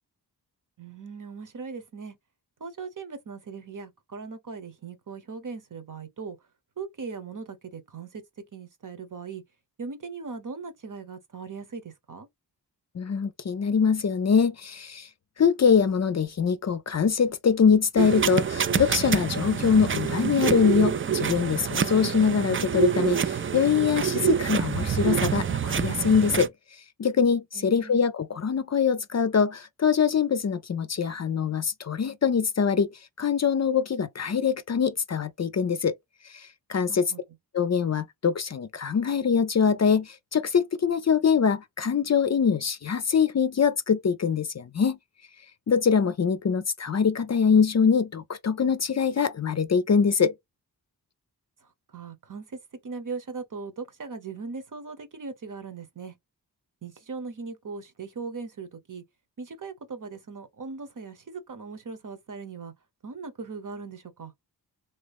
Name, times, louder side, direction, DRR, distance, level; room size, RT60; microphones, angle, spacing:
voice 1, 0.8-2.2 2.6-6.4 6.8-8.2 8.5-9.4 9.8-12.3 27.5-28.0 36.9-37.2 51.6-56.2 56.8-59.0 59.4-62.7 63.0-64.3, right 4 dB, 50° right, 1.0 m, -39 dB
voice 2, 12.9-15.1 15.4-26.5 27.0-35.9 36.2-37.1 37.5-45.0 45.7-50.3, left 6 dB, 40° left, 0.5 m, -23 dB
sound 1, 18.0-26.5, right 7 dB, 35° right, 0.4 m, -26 dB
3.0 x 2.9 x 3.5 m
cardioid pair, 60°, 40 cm